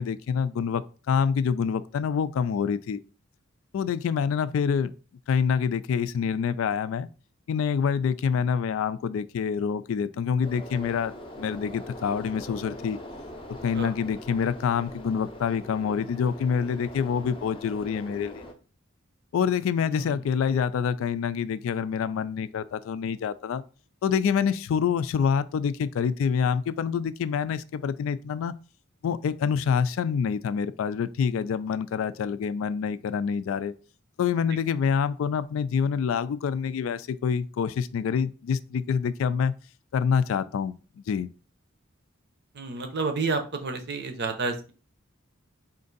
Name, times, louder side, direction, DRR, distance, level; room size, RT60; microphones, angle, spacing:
voice 1, 0.0-3.0 3.7-4.9 5.3-7.1 7.5-13.0 13.6-18.4 19.3-23.6 24.0-28.5 29.0-33.7 34.2-39.5 39.9-40.7 41.1-41.3, left 6 dB, 70° left, 0.3 m, -26 dB
sound 1, 10.4-18.5, equal, 25° left, 0.6 m, -42 dB
voice 2, 42.5-44.7, right 4 dB, 55° right, 0.7 m, -30 dB
4.4 x 2.5 x 3.9 m
head